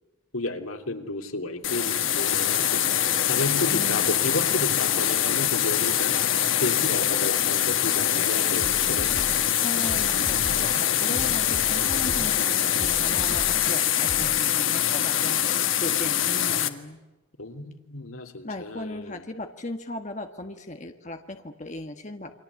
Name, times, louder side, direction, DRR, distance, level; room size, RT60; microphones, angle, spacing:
voice 1, 0.3-2.9 3.2-9.1 17.4-19.2, left 2 dB, 85° left, 5 dB, 3.1 m, -32 dB
sound 1, 1.6-16.7, left 10 dB, 70° left, 1.8 m, -24 dB
voice 2, 3.7-4.5 9.5-17.0 18.4-22.3, left 1 dB, 35° left, 5 dB, 1.6 m, -37 dB
sound 2, 8.6-14.4, right 1 dB, 50° right, 2.4 m, -38 dB
29.5 x 24.0 x 8.3 m, 1.1 s
head